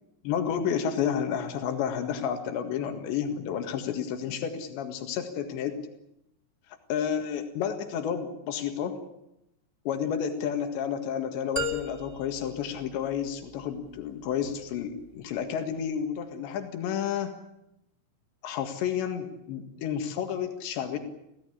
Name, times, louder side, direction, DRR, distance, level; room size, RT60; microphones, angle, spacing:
voice 1, 0.2-5.8 6.9-9.0 9.9-17.4 18.4-21.0, left 8 dB, 90° left, 6 dB, 4.1 m, -31 dB
sound 1, 11.6-13.6, left 2 dB, 10° left, 2.2 m, -36 dB
26.5 x 16.5 x 10.0 m, 0.85 s
omnidirectional pair, 5.0 m